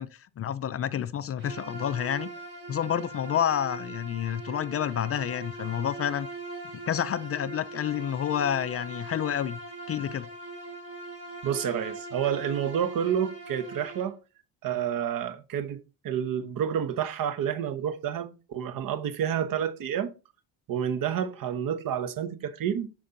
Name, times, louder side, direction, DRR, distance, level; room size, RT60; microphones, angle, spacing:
voice 1, 0.0-2.3 2.7-6.3 6.9-9.6 9.9-10.3, left 9 dB, 40° left, 0.5 m, -29 dB
Bowed string instrument, 1.4-14.2, right 2 dB, 30° right, 4.1 m, -41 dB
voice 2, 11.4-14.2 14.6-15.8 16.0-20.1 20.7-22.9, right 9 dB, 60° right, 1.0 m, -29 dB
7.0 x 5.2 x 3.8 m
cardioid pair, 100°, 38 cm